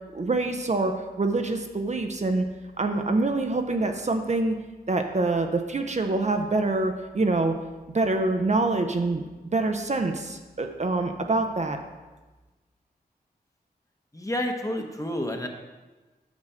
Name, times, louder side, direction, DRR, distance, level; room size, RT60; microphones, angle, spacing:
voice 1, 0.1-2.4 2.8-4.5 4.9-7.5 7.9-9.2 9.5-11.8, right 2 dB, 45° right, 5 dB, 0.7 m, -25 dB
voice 2, 14.1-15.5, left 1 dB, 20° left, 3 dB, 1.1 m, -29 dB
7.4 x 6.2 x 5.0 m, 1.2 s
cardioid pair, 55°, 17 cm